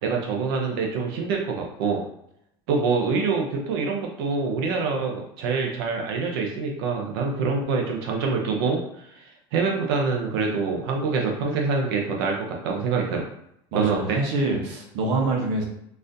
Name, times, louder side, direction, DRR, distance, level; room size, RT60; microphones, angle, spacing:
voice 1, 0.0-2.0 2.7-13.3 13.7-14.2, right 4 dB, 85° right, 1 dB, 0.7 m, -25 dB
voice 2, 13.7-15.6, right 2 dB, 55° right, 0 dB, 0.9 m, -25 dB
4.0 x 2.5 x 2.6 m, 0.76 s
cardioid pair, 170°, 12 cm